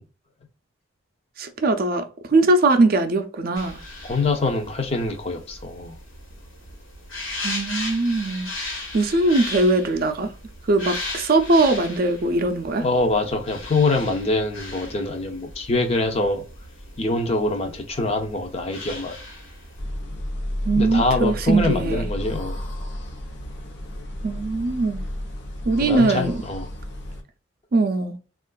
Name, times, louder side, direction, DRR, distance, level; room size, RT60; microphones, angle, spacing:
voice 1, 1.4-3.8 7.4-8.5 8.9-10.3 10.7-12.8 20.6-22.0 24.2-25.0 25.7-26.4 27.7-28.2, right 2 dB, 50° right, 0.4 m, -21 dB
sound 1, 3.5-19.8, left 2 dB, 80° left, 1.2 m, -37 dB
voice 2, 4.0-5.9 12.7-16.4 17.0-19.2 20.7-22.6 25.8-26.7, left 2 dB, 30° left, 0.5 m, -24 dB
sound 2, 19.8-27.2, left 1 dB, 60° left, 0.8 m, -32 dB
3.5 x 2.4 x 2.2 m
head